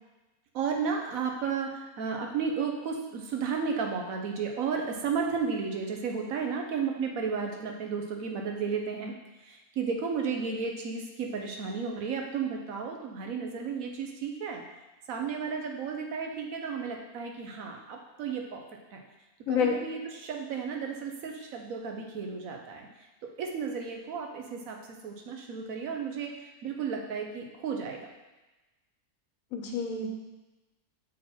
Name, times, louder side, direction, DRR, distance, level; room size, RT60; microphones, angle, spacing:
voice 1, 0.5-9.1 9.4-14.6 15.1-18.6 18.9-19.0 19.5-22.9 23.2-24.8 25.0-28.1, right 5 dB, 75° right, 2 dB, 1.2 m, -33 dB
voice 2, 29.5-30.1, left 6 dB, 70° left, 2 dB, 1.2 m, -28 dB
6.4 x 3.8 x 4.3 m, 1.1 s
omnidirectional pair, 1.5 m